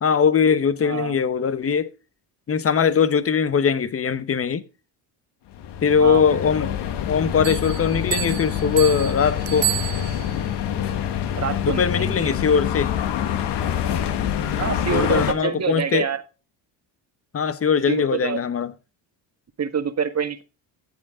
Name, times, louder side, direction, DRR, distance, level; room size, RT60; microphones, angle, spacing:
voice 1, 0.0-1.9 2.5-4.6 5.8-6.8 7.1-9.7 11.6-12.9 14.9-16.1 17.3-18.7, left 6 dB, 30° left, 1.1 m, -21 dB
voice 2, 0.8-1.2 6.0-6.2 11.3-12.2 14.6-16.2 17.9-18.4 19.6-20.4, right 7 dB, 35° right, 1.7 m, -26 dB
sound 1, 5.5-15.3, left 9 dB, 65° left, 1.6 m, -26 dB
Bell, 7.4-10.5, right 21 dB, 65° right, 0.6 m, -30 dB
13.5 x 7.9 x 3.7 m
supercardioid pair, 85°, 45 cm